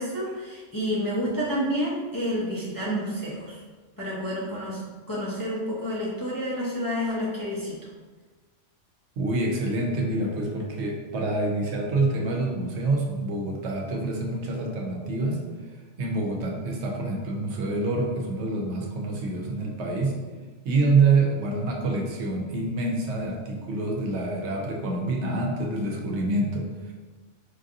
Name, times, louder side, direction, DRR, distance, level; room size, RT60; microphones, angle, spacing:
voice 1, 0.0-3.6 4.0-4.8 5.1-7.8, equal, 25° left, -7 dB, 0.5 m, -29 dB
voice 2, 9.2-15.4 16.0-20.2 20.6-26.9, right 3 dB, 70° right, 0 dB, 0.9 m, -26 dB
4.5 x 2.5 x 2.5 m, 1.3 s
omnidirectional pair, 1.2 m